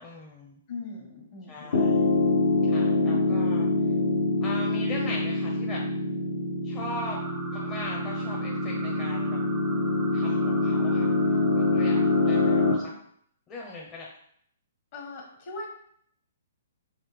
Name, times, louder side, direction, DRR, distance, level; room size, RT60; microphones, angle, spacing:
voice 1, 0.0-0.6 1.5-2.1 2.7-3.7 4.4-5.8 6.6-7.2 7.5-9.4 10.1-11.1 11.6-12.9 13.5-14.1, left 2 dB, 20° left, -4 dB, 0.7 m, -39 dB
voice 2, 0.7-2.1 2.7-3.4 14.9-15.7, left 3 dB, 50° left, -1 dB, 1.6 m, -40 dB
Piano, 1.7-12.7, left 2 dB, 65° left, 1.0 m, -25 dB
sound 1, 6.9-12.8, right 3 dB, 15° right, 0.5 m, -42 dB
5.4 x 2.6 x 3.4 m, 0.68 s
hypercardioid pair, 130°, 0 cm